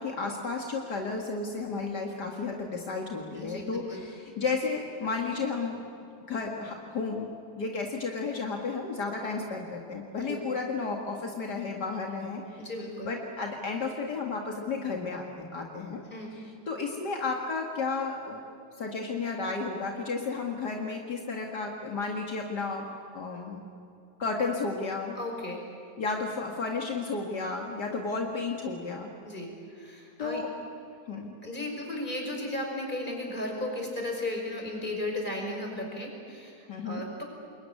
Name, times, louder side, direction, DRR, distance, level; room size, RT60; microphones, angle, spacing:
voice 1, 0.0-5.8 6.3-7.3 7.6-12.7 13.0-16.0 16.3-18.4 18.8-22.9 23.1-23.7 24.2-25.1 26.0-29.1 30.2-30.5 31.1-31.3 36.7-37.0, left 4 dB, 70° left, 1 dB, 2.6 m, -33 dB
voice 2, 3.4-4.1 10.3-10.4 12.6-13.1 16.1-16.3 25.2-25.6 29.3-30.4 31.4-37.2, left 1 dB, 25° left, 1 dB, 5.6 m, -35 dB
27.0 x 22.0 x 9.8 m, 2.6 s
omnidirectional pair, 1.8 m